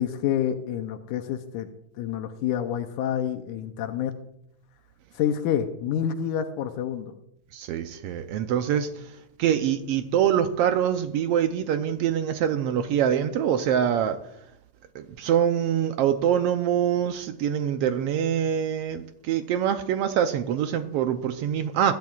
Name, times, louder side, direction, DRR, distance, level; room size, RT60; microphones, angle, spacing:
voice 1, 0.0-1.7 2.0-4.2 5.2-7.1, left 9 dB, 90° left, 7 dB, 2.2 m, -28 dB
voice 2, 7.5-9.1 9.4-14.2 14.9-22.0, right 9 dB, 90° right, 8 dB, 1.3 m, -24 dB
22.0 x 10.5 x 2.4 m, 0.78 s
omnidirectional pair, 3.5 m